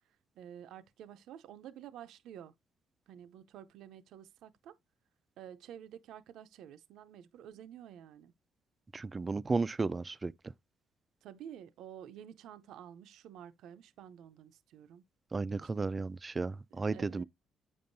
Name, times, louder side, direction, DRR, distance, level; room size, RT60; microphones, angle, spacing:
voice 1, 0.4-2.5 3.1-4.8 5.4-8.3 11.2-15.0 15.5-15.7 16.7-17.2, right 10 dB, 75° right, 0.5 m, -50 dB
voice 2, 8.9-10.3 15.3-17.2, right 3 dB, 25° right, 0.3 m, -34 dB
8.4 x 5.4 x 2.6 m
cardioid pair, 85°, 0 cm